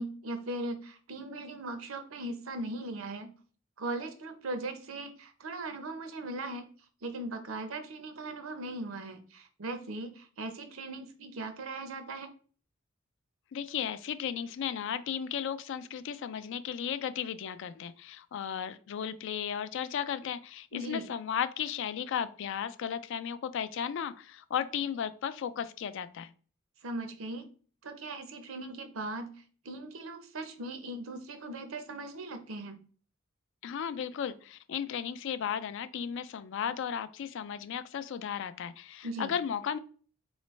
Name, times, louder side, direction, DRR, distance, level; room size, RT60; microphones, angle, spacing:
voice 1, 0.0-3.3 3.8-6.7 7.0-12.3 20.7-21.1 26.8-27.5 27.8-32.8 39.0-39.3, right 2 dB, 85° right, 8 dB, 0.7 m, -39 dB
voice 2, 13.5-26.3 33.6-39.8, left 8 dB, 65° left, 13 dB, 0.3 m, -35 dB
4.0 x 3.1 x 3.1 m, 0.41 s
head